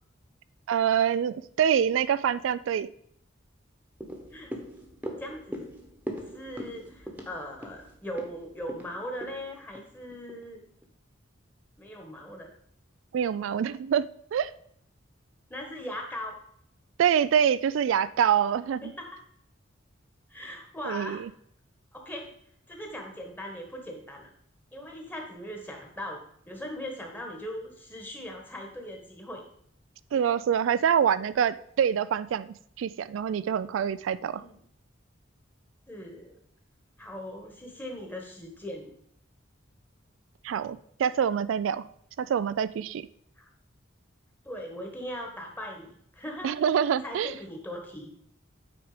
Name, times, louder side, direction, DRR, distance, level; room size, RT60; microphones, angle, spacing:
voice 1, 0.7-2.9 13.1-14.5 17.0-18.9 20.9-21.3 30.1-34.4 40.4-41.9 42.2-43.1 46.4-47.3, right 8 dB, 80° right, 15 dB, 0.3 m, -26 dB
sound 1, 4.0-10.4 10.8-10.9, equal, 10° right, 1.1 m, -41 dB
voice 2, 5.2-5.7 6.3-10.6 11.8-12.5 15.5-16.3 18.8-19.1 20.3-21.2 21.9-22.3 22.7-24.3 24.7-29.4 34.4-34.5 35.9-36.4 37.0-38.9 43.4-43.5 44.4-46.6 47.0-48.1, equal, 10° left, 2 dB, 1.4 m, -39 dB
8.8 x 4.7 x 5.0 m, 0.67 s
head